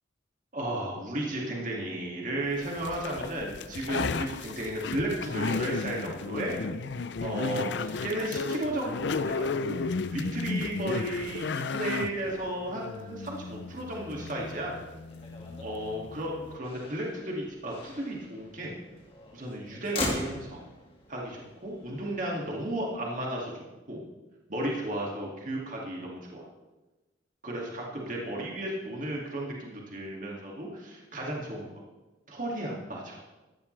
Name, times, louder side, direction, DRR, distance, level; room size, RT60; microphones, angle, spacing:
voice 1, 0.5-6.7 7.2-14.7 15.6-18.7 19.3-20.6 21.1-24.0 24.5-26.5 27.4-31.8 32.3-33.2, right 1 dB, 40° right, -2 dB, 2.3 m, -34 dB
sound 1, 2.6-16.6, left 4 dB, 65° left, 0.5 m, -34 dB
Motor vehicle (road), 7.1-23.0, left 2 dB, 30° left, 2.0 m, -43 dB
16.0 x 12.5 x 3.3 m, 1.1 s
head